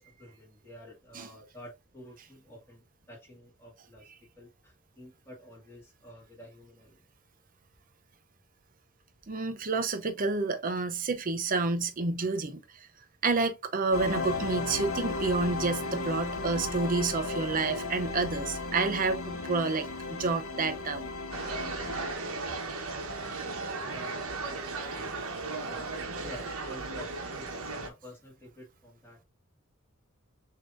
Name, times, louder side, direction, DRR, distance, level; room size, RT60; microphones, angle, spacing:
voice 1, 0.0-4.1 4.4-7.0 22.4-22.6 23.8-24.6 25.7-29.2, left 1 dB, 10° left, 1.9 m, -50 dB
voice 2, 9.3-12.9 13.2-21.1, right 3 dB, 40° right, 0.6 m, -29 dB
sound 1, 13.9-22.1, left 3 dB, 75° left, 1.1 m, -35 dB
sound 2, 21.3-27.9, right 3 dB, 80° right, 1.0 m, -36 dB
6.4 x 2.8 x 2.5 m
head